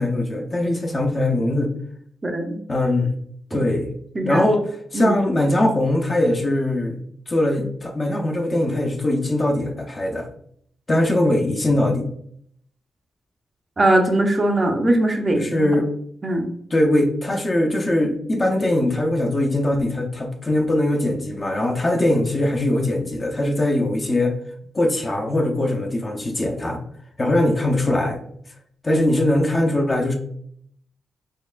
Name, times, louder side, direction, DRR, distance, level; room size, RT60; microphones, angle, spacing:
voice 1, 0.0-1.7 2.7-3.1 3.5-3.9 4.2-7.0 7.3-10.3 10.9-12.1 15.3-15.9 16.7-24.3 24.7-26.8 27.2-28.2 28.8-30.1, left 1 dB, 25° left, 3 dB, 0.5 m, -21 dB
voice 2, 2.2-2.6 4.1-4.4 4.9-5.1 13.8-15.7 16.2-16.5, right 1 dB, 25° right, 4 dB, 0.5 m, -20 dB
4.3 x 2.8 x 2.4 m, 0.65 s
wide cardioid pair, 145°, 0 cm